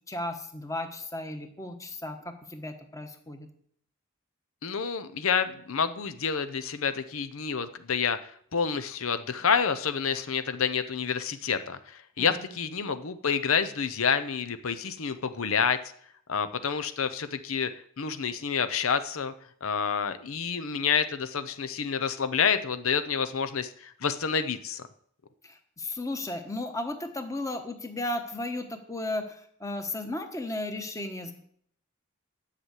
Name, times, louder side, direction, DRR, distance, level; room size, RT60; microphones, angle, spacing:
voice 1, 0.1-3.5 12.2-12.5 25.4-31.3, left 1 dB, 15° left, 6 dB, 1.2 m, -35 dB
voice 2, 4.6-8.2 8.5-15.8 16.3-17.7 18.0-19.3 19.6-24.8, left 6 dB, 85° left, 11 dB, 0.7 m, -28 dB
11.0 x 5.8 x 8.2 m, 0.64 s
head